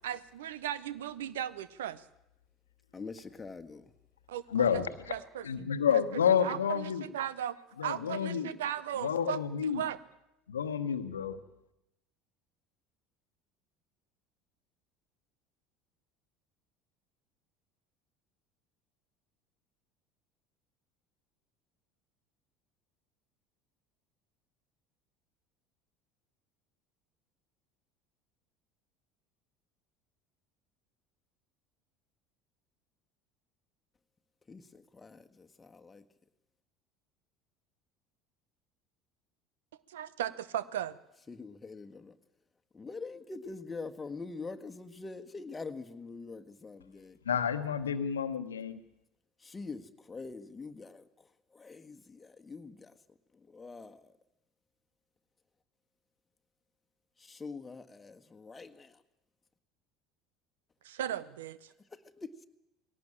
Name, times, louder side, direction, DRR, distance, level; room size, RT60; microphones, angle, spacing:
voice 1, 0.0-2.0 4.3-5.5 5.9-7.6 7.8-10.0 39.9-41.0 60.8-61.7, right 10 dB, 75° right, 18 dB, 0.9 m, -37 dB
voice 2, 2.9-3.8 34.5-36.0 41.3-42.1 42.7-47.2 49.4-51.1 51.5-52.9 53.5-54.1 57.2-58.9 61.9-62.5, left 4 dB, 20° left, 6 dB, 1.6 m, -44 dB
voice 3, 4.5-4.9 5.4-7.0 7.8-8.5 9.0-9.8 10.5-11.4 47.3-48.8, left 7 dB, 85° left, 10 dB, 1.2 m, -29 dB
20.0 x 17.5 x 8.8 m, 0.88 s
hypercardioid pair, 70°, 0 cm